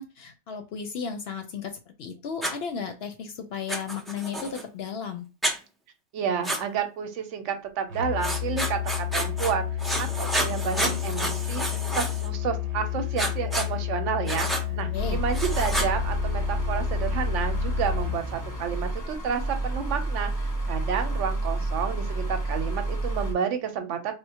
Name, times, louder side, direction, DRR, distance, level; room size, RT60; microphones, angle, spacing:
voice 1, 0.0-5.3 14.9-15.2, left 6 dB, 65° left, 5 dB, 0.7 m, -34 dB
Writing, 2.4-2.5 3.7-4.6 5.4-5.6 6.4-6.6 8.2-9.5 9.8-12.3 13.2-13.7 14.3-14.6 15.3-15.9, right 1 dB, ahead, 0.3 m, -29 dB
voice 2, 6.1-9.6 10.0-24.1, right 7 dB, 85° right, 7 dB, 1.0 m, -30 dB
Musical instrument, 7.9-18.3, left 13 dB, 65° right, 1.0 m, -31 dB
sound 1, 15.0-23.3, right 2 dB, 20° left, 0.8 m, -30 dB
4.3 x 2.1 x 2.8 m, 0.30 s
omnidirectional pair, 1.2 m